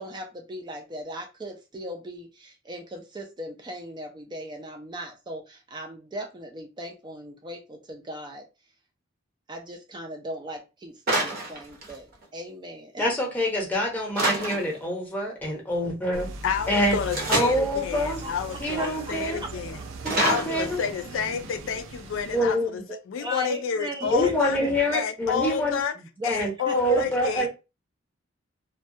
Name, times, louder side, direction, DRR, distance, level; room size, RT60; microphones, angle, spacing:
voice 1, 0.0-8.4 9.5-13.0 17.9-19.1 22.9-24.7 26.0-26.3 26.6-26.8, equal, 25° right, 0.4 m, -38 dB
sound 1, 11.1-12.3 14.2-14.9 17.1-17.7 20.1-21.1, right 2 dB, 50° right, 0.7 m, -27 dB
voice 2, 13.0-16.3 16.7-17.0 17.3-18.2 18.6-19.4 20.0-20.8 22.3-22.8 24.1-25.8 26.3-27.5, equal, 10° left, 0.7 m, -26 dB
sound 2, 16.1-22.4, right 2 dB, 90° right, 0.4 m, -39 dB
voice 3, 16.4-19.8 20.2-22.8 23.1-24.6 24.9-25.9 26.2-27.5, left 7 dB, 80° left, 0.3 m, -29 dB
2.2 x 2.1 x 2.6 m
head